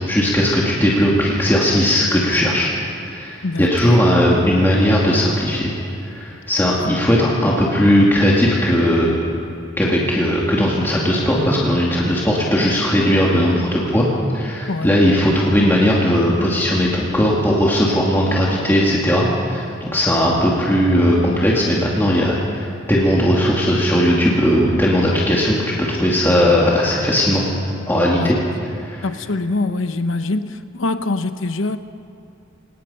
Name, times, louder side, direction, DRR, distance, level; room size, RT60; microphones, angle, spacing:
voice 1, 0.0-2.7 3.0-5.7 6.1-9.1 9.8-14.1 14.3-25.6 25.9-27.4 27.9-28.4 28.8-29.1, equal, 10° left, -5 dB, 2.4 m, -17 dB
voice 2, 3.4-4.0 6.8-7.0 14.7-14.9 28.2-28.3 29.0-31.8, left 2 dB, 85° left, 10 dB, 1.0 m, -24 dB
25.5 x 19.0 x 5.7 m, 2.8 s
head